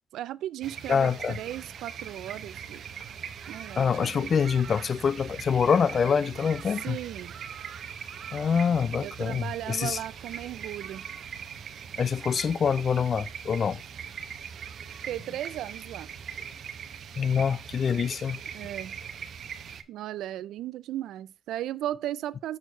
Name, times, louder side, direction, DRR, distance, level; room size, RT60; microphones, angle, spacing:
voice 1, 0.1-2.8 3.5-4.3 6.8-7.3 9.0-11.1 15.0-16.1 18.5-19.0 19.9-22.6, right 13 dB, 85° right, 0.3 m, -36 dB
sound 1, 0.6-19.8, right 7 dB, 65° right, 0.7 m, -41 dB
voice 2, 0.9-1.4 3.8-7.0 8.3-10.0 12.0-13.8 17.2-18.4, left 6 dB, 50° left, 0.3 m, -25 dB
6.4 x 4.4 x 4.4 m
cardioid pair, 90°, 0 cm